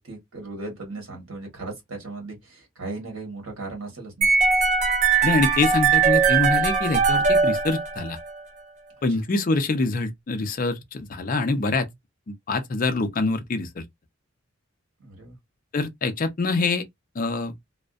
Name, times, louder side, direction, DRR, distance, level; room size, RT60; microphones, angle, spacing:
voice 1, 0.0-4.3 15.0-15.4, right 3 dB, 75° right, 1.1 m, -37 dB
sound 1, 4.2-8.3, right 5 dB, 35° right, 0.3 m, -20 dB
voice 2, 5.2-8.2 9.0-11.9 12.5-13.8 15.7-16.9 17.2-17.5, left 3 dB, 40° left, 0.4 m, -25 dB
2.5 x 2.1 x 2.3 m
head